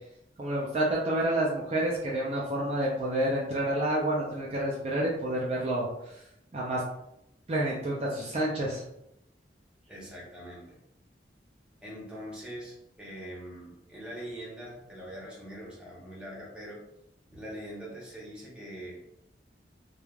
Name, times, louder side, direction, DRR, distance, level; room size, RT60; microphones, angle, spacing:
voice 1, 0.4-6.2 6.5-6.8 7.5-8.8, right 1 dB, 35° right, -4 dB, 0.4 m, -29 dB
voice 2, 9.9-10.8 11.8-16.8 17.3-19.0, equal, 5° right, -6 dB, 0.8 m, -43 dB
3.1 x 2.2 x 2.3 m, 0.81 s
head